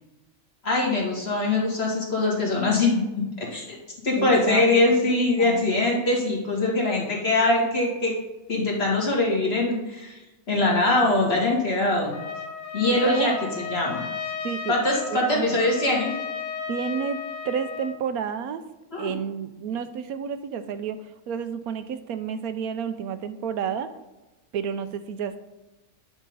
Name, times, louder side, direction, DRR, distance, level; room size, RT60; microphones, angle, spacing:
voice 1, 0.6-3.0 3.4-3.6 4.0-8.1 8.5-10.2 10.5-12.2 12.7-14.0 14.7-16.1 18.9-19.1, left 2 dB, 45° left, -3 dB, 2.3 m, -22 dB
voice 2, 4.2-5.1 5.4-5.9 12.9-13.6 14.4-14.7 15.1-15.6 16.7-17.2 17.4-18.6 19.0-21.0 21.3-23.9 24.5-25.4, right 7 dB, 75° right, 10 dB, 1.1 m, -30 dB
Trumpet, 12.1-18.0, left 6 dB, 65° left, 1.2 m, -34 dB
9.7 x 3.6 x 5.4 m, 1.1 s
omnidirectional pair, 1.6 m